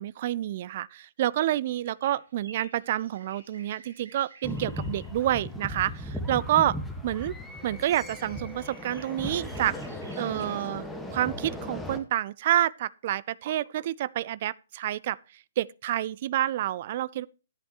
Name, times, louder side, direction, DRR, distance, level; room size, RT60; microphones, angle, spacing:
voice 1, 0.0-7.4 7.6-9.8 10.2-10.8 11.1-15.2 15.6-17.3, right 13 dB, 40° right, 0.4 m, -28 dB
sound 1, 1.6-5.7 6.9-7.2 7.6-11.0 11.3-11.4 11.7-11.8, right 3 dB, 60° right, 7.7 m, -53 dB
sound 2, 4.4-12.0, left 1 dB, ahead, 1.5 m, -37 dB
13.0 x 11.0 x 3.1 m
figure-of-eight pair, 125°, 0 cm